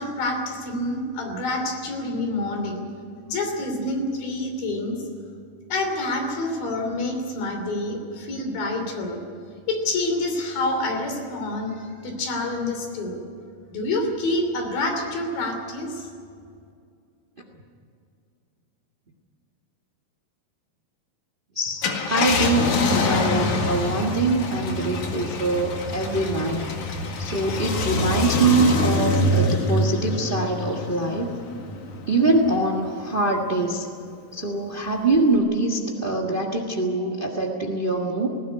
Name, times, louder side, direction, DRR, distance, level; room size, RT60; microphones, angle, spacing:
voice 1, 0.0-2.8 3.2-5.0 5.7-9.2 9.7-13.2 13.7-16.1, left 2 dB, 80° left, 4 dB, 4.8 m, -27 dB
voice 2, 21.5-26.7 27.2-31.3 32.1-33.9 34.3-38.3, right 2 dB, 60° right, 3 dB, 0.5 m, -23 dB
Car, 21.7-32.5 33.0-33.1 35.1-35.4, left 2 dB, 60° left, 3.3 m, -25 dB
20.0 x 16.5 x 9.6 m, 2.3 s
omnidirectional pair, 4.1 m